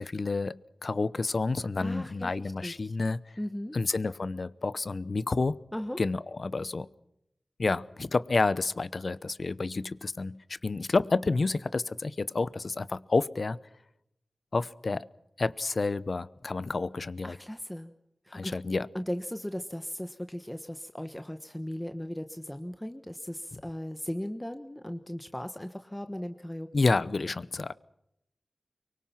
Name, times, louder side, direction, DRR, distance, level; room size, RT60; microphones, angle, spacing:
voice 1, 0.0-3.4 3.7-5.6 6.0-6.9 7.6-13.6 14.5-15.1 15.4-17.4 18.3-18.9 23.5-23.6 26.7-27.7, left 3 dB, 60° left, 0.8 m, -29 dB
voice 2, 1.8-2.3 2.6-2.7 3.4-3.8 5.7-6.0 17.2-17.9 18.3-18.5 18.9-26.9, equal, 10° left, 1.2 m, -37 dB
24.5 x 24.0 x 5.9 m
wide cardioid pair, 60°, 0 cm